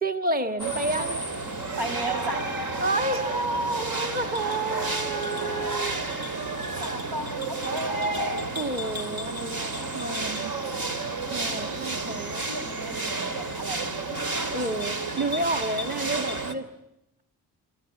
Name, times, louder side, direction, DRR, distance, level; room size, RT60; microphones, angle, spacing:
voice 1, 0.0-1.2 2.8-3.2 3.8-6.1 8.6-10.5 11.3-12.4 14.5-16.7, right 2 dB, 20° right, 7 dB, 1.6 m, -30 dB
sound 1, 0.6-16.5, right 3 dB, 65° right, 3.2 m, -31 dB
voice 2, 1.8-2.5 3.1-3.9 6.8-8.6 12.5-14.3, right 2 dB, 90° right, 6 dB, 7.0 m, -33 dB
26.0 x 26.0 x 8.5 m, 0.86 s
cardioid pair, 90°, 38 cm